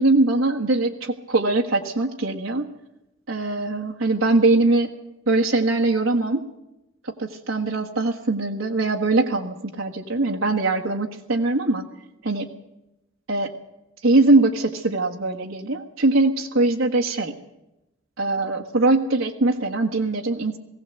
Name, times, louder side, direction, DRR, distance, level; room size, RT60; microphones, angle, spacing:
voice 1, 0.0-2.7 3.3-4.9 5.3-6.5 7.0-11.8 12.2-12.5 13.3-13.5 14.0-17.3 18.2-20.6, right 2 dB, 75° right, 1 dB, 1.7 m, -21 dB
19.5 x 17.0 x 8.1 m, 0.93 s
head